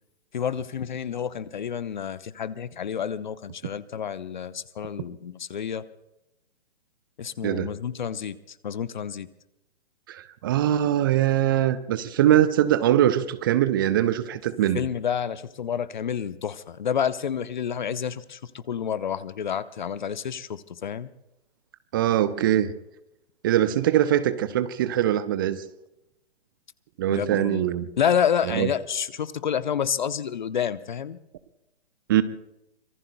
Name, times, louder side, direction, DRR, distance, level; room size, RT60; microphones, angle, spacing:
voice 1, 0.3-5.9 7.2-8.4 8.6-9.3 14.7-21.1 27.1-27.7 28.0-31.2, left 8 dB, 50° left, 14 dB, 0.9 m, -29 dB
voice 2, 10.1-14.8 21.9-22.7 23.4-25.6 27.0-27.9 28.5-28.7 32.1-32.2, right 12 dB, 20° right, 14 dB, 0.6 m, -22 dB
25.5 x 23.0 x 2.2 m, 0.86 s
figure-of-eight pair, 130°, 31 cm